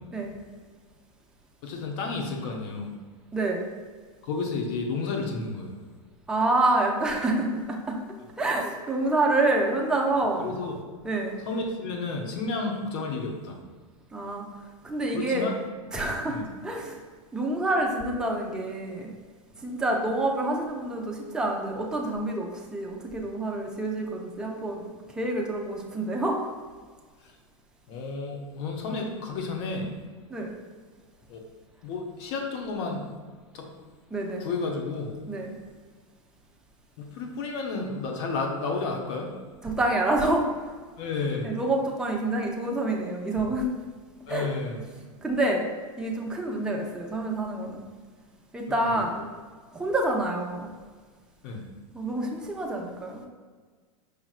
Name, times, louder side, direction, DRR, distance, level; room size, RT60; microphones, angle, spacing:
voice 1, 1.6-2.9 4.2-5.7 10.4-10.8 11.5-13.6 15.1-15.5 16.3-16.4 27.9-29.9 31.3-31.4 31.8-33.1 33.5-33.7 34.4-35.1 37.0-39.3 41.0-41.5 44.3-44.8 48.7-49.0 51.4-51.6, left 3 dB, 55° left, 2 dB, 0.8 m, -31 dB
voice 2, 3.3-3.7 6.3-8.0 8.4-10.5 11.0-11.4 14.1-14.5 14.8-15.5 15.9-16.4 16.6-17.0 17.3-19.1 19.5-24.9 25.1-26.5 30.3-30.5 34.1-34.5 35.3-35.6 39.6-40.7 41.4-43.7 44.3-44.5 45.2-45.7 46.0-47.8 48.5-49.1 49.7-50.7 51.9-53.2, right 2 dB, 5° right, -1 dB, 0.5 m, -27 dB
5.0 x 3.0 x 2.4 m, 1.5 s
hypercardioid pair, 115°, 17 cm